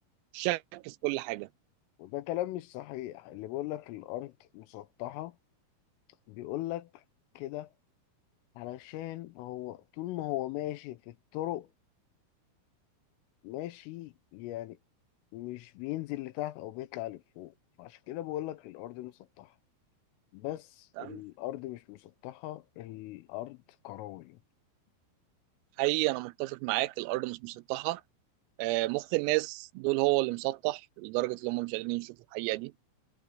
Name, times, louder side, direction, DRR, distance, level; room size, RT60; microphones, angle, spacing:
voice 1, 0.3-1.5 21.0-21.2 25.8-28.0 28.6-32.7, right 20 dB, 90° right, 3.4 m, -31 dB
voice 2, 2.0-5.4 6.3-7.0 7.4-7.7 8.6-11.7 13.4-14.8 15.3-17.5 17.8-19.5 20.3-23.6 23.9-24.4, left 15 dB, 85° left, 3.5 m, -39 dB
omnidirectional pair, 5.9 m